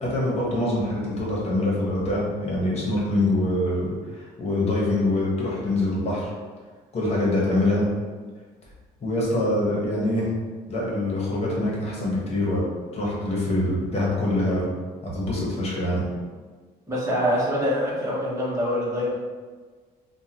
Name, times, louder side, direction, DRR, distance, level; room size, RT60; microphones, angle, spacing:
voice 1, 0.0-6.3 6.9-7.9 9.0-10.3 10.7-12.7 12.9-14.7 15.0-16.0, left 1 dB, 40° left, -4 dB, 1.3 m, -24 dB
voice 2, 16.9-19.2, equal, 20° right, -7 dB, 1.4 m, -24 dB
3.6 x 2.5 x 2.9 m, 1.4 s
cardioid pair, 110°, 17 cm